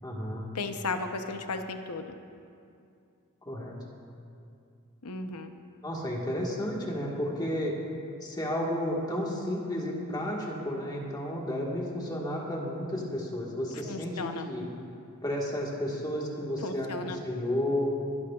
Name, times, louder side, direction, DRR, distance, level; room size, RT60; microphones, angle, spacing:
voice 1, 0.0-0.5 3.4-3.8 5.8-7.7 8.2-14.1 14.5-14.6 15.2-17.9, left 1 dB, 20° left, -2 dB, 1.6 m, -32 dB
voice 2, 0.5-2.0 5.0-5.5 13.8-14.5 16.6-17.2, left 3 dB, 90° left, 6 dB, 0.9 m, -35 dB
23.5 x 11.0 x 2.4 m, 2.5 s
head